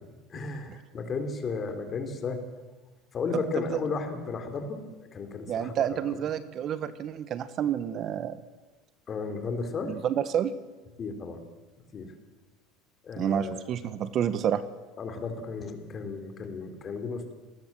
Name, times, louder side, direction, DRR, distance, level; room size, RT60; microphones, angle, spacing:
voice 1, 0.3-2.4 3.1-6.0 9.1-10.0 11.0-11.4 11.9-12.1 13.0-13.6 15.0-17.3, left 4 dB, 30° left, 7 dB, 4.0 m, -34 dB
voice 2, 5.5-8.4 9.9-10.5 13.2-14.6, right 9 dB, 40° right, 13 dB, 1.3 m, -29 dB
27.0 x 19.5 x 7.8 m, 1.2 s
supercardioid pair, 125°, 0 cm